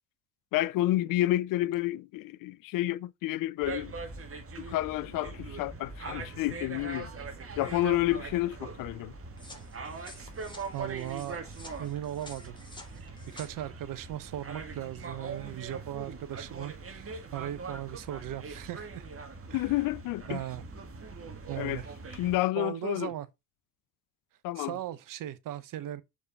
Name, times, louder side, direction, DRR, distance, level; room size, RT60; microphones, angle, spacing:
voice 1, 0.5-3.9 4.6-7.1 7.6-9.1 19.5-20.4 21.6-21.8 22.1-23.1 24.4-24.8, left 16 dB, 55° left, 0.6 m, -30 dB
sound 1, 3.6-22.4, right 4 dB, 35° right, 2.0 m, -42 dB
sound 2, 9.4-13.5, left 2 dB, 10° left, 2.7 m, -51 dB
voice 2, 10.7-12.6 13.0-19.0 19.5-19.7 20.3-20.6 21.5-21.9 22.6-23.3 24.6-26.0, right 12 dB, 50° right, 1.0 m, -38 dB
6.7 x 5.2 x 4.1 m
hypercardioid pair, 60°, 40 cm